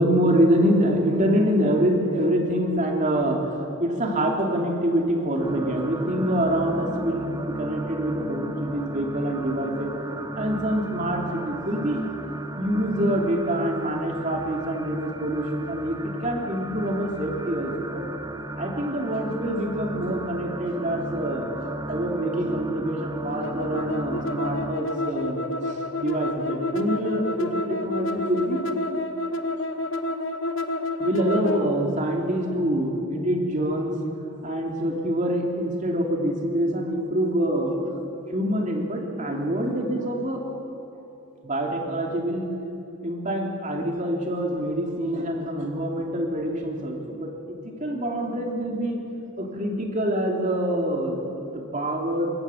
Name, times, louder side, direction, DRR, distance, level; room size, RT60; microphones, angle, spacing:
voice 1, 0.0-9.9 10.3-12.0 12.6-18.0 18.6-28.6 31.0-34.0 34.4-38.0 38.3-40.4 41.4-42.5 43.0-49.0 49.4-52.3, right 1 dB, 35° right, 1 dB, 2.8 m, -26 dB
sound 1, 5.4-24.7, right 1 dB, 20° right, 0.8 m, -35 dB
sound 2, 23.4-31.7, left 2 dB, 65° left, 1.2 m, -29 dB
22.5 x 18.0 x 7.2 m, 2.8 s
head